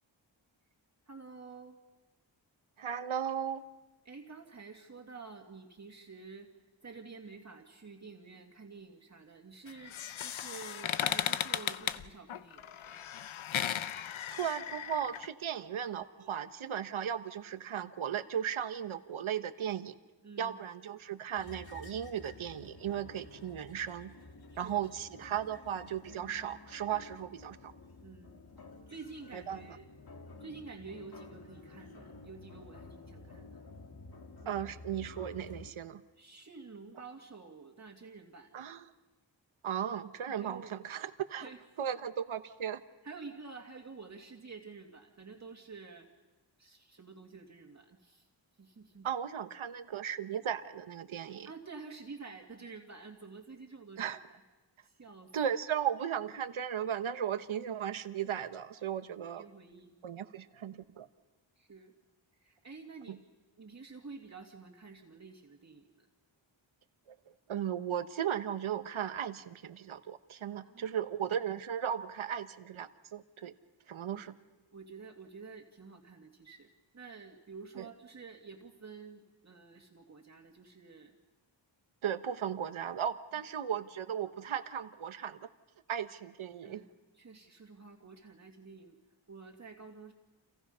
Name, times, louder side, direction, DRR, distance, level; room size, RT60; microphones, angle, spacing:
voice 1, 1.1-1.8 4.0-6.5 6.8-13.0 16.2-16.4 20.2-20.7 24.5-24.8 28.0-28.4 28.9-29.9 30.4-33.6 34.4-34.7 36.2-38.6 40.3-40.8 41.4-41.6 43.0-46.1 46.6-48.3 48.6-49.1 51.4-54.4 54.8-55.3 59.2-60.0 61.6-61.9 62.3-63.2 63.6-66.1 70.5-71.0 74.1-74.3 74.7-81.1 86.6-86.9 87.1-89.0 89.3-90.1, right 4 dB, 35° right, 1 dB, 2.4 m, -50 dB
voice 2, 2.8-3.6 14.3-19.9 20.4-24.1 24.6-27.7 29.3-29.6 34.5-36.0 38.5-38.8 39.6-41.5 41.8-42.8 49.0-51.5 54.0-54.2 55.3-59.4 60.0-61.1 63.1-63.2 67.3-73.5 73.9-74.3 77.8-77.9 82.0-85.5 85.9-86.8, right 9 dB, 85° right, 11 dB, 1.2 m, -36 dB
sound 1, 9.7-15.3, left 10 dB, 85° left, 0.8 m, -36 dB
sound 2, 21.4-35.7, left 3 dB, 50° left, 2.0 m, -52 dB
30.0 x 28.0 x 5.7 m, 1.2 s
wide cardioid pair, 110°, 47 cm